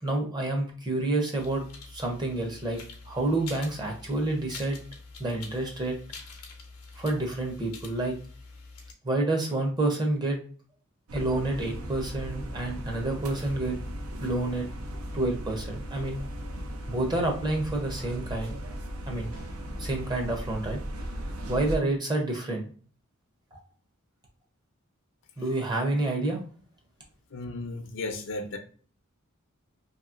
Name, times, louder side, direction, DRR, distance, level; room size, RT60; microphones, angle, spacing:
voice 1, 0.0-2.8 3.1-4.8 5.2-6.0 7.0-8.1 9.0-10.4 11.1-13.8 14.2-14.7 15.1-16.2 16.9-18.6 19.1-19.4 19.8-20.8 21.5-22.7 23.5-23.6 25.4-26.4, right 2 dB, 20° right, 0.6 m, -29 dB
sound 1, 1.4-8.9, left 4 dB, 90° left, 0.7 m, -46 dB
sound 2, 11.1-21.8, equal, 80° right, 0.5 m, -37 dB
sound 3, 19.3-19.9, right 2 dB, 60° right, 1.3 m, -50 dB
voice 2, 27.3-28.6, left 2 dB, 60° left, 0.4 m, -34 dB
2.8 x 2.7 x 2.4 m
head